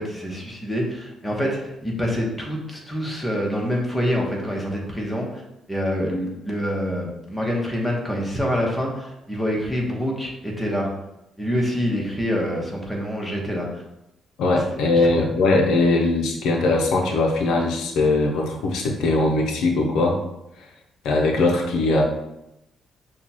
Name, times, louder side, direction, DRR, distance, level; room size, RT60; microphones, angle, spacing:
voice 1, 0.0-5.4 5.7-10.9 11.4-13.7 14.5-14.6 14.9-15.1, equal, 5° left, -2 dB, 1.1 m, -26 dB
voice 2, 14.4-20.2 21.0-22.0, left 2 dB, 85° left, 1 dB, 0.6 m, -20 dB
6.0 x 2.3 x 2.9 m, 0.90 s
cardioid pair, 90°, 0 cm